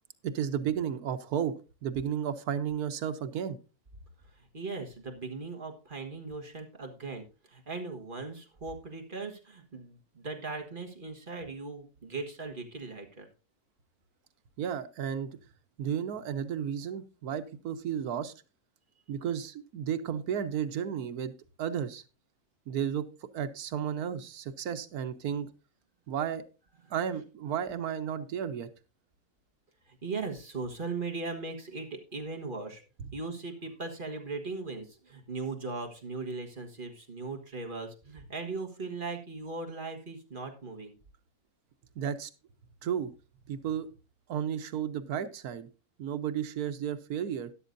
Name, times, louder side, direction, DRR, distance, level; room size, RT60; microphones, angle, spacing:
voice 1, 0.2-1.5 1.8-3.6 14.6-15.4 15.8-18.3 19.1-21.3 21.6-22.0 22.7-23.0 23.3-25.5 26.1-26.4 26.9-28.7 41.9-42.3 42.8-43.1 43.5-43.9 44.3-45.7 46.0-47.5, right 8 dB, 90° right, 11 dB, 1.4 m, -33 dB
voice 2, 4.4-13.3 26.8-26.9 29.9-32.8 33.1-41.0, right 3 dB, 35° right, 3 dB, 1.7 m, -39 dB
13.0 x 11.0 x 2.6 m, 0.32 s
omnidirectional pair, 1.5 m